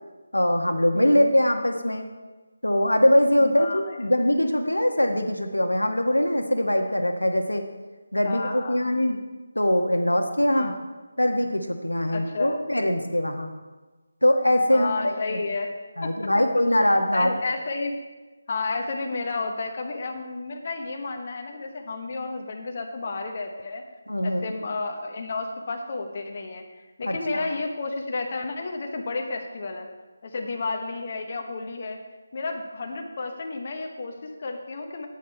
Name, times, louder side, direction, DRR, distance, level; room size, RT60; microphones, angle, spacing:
voice 1, 0.3-2.0 2.6-7.6 8.1-9.2 9.5-10.7 11.2-13.5 14.2-15.4 16.0-17.3 24.1-24.4 27.0-27.5, left 1 dB, 80° left, 5 dB, 1.3 m, -22 dB
voice 2, 0.9-1.3 3.4-4.0 8.2-8.8 10.5-10.7 12.1-12.5 14.7-15.7 16.0-16.1 17.1-18.0 18.5-23.8 24.2-29.9 30.2-32.0 32.3-35.1, left 3 dB, 35° left, 3 dB, 1.0 m, -32 dB
10.0 x 9.2 x 4.4 m, 1.2 s
figure-of-eight pair, 155°, 0 cm